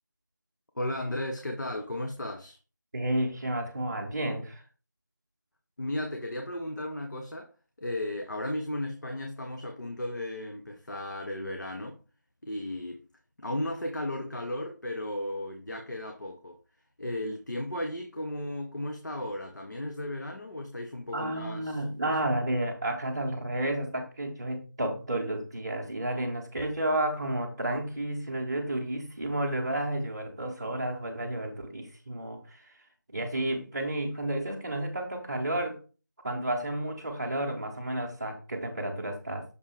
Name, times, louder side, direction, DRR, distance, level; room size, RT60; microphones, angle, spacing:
voice 1, 0.7-2.6 5.8-7.5 7.8-12.0 12.4-13.0 13.4-16.6 17.0-22.4, left 1 dB, 65° left, 1.1 m, -35 dB
voice 2, 2.9-4.6 21.1-32.7 33.1-35.8 36.2-39.4, right 1 dB, 15° right, 0.7 m, -31 dB
6.5 x 5.5 x 3.4 m
figure-of-eight pair, 170°, 11 cm